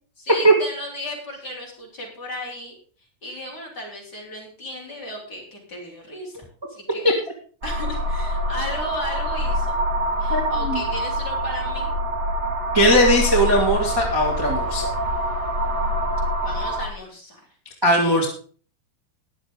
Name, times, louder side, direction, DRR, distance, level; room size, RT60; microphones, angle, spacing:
voice 1, 0.2-2.8 3.2-7.1 7.6-9.8 10.2-12.0 16.4-17.5, left 1 dB, 25° left, -2 dB, 4.3 m, -35 dB
sound 1, 7.6-16.9, equal, 30° right, 2.5 m, -25 dB
voice 2, 10.3-10.8 12.7-14.9 17.8-18.3, equal, 10° right, -2 dB, 1.7 m, -18 dB
20.5 x 7.1 x 3.8 m, 0.42 s
omnidirectional pair, 4.4 m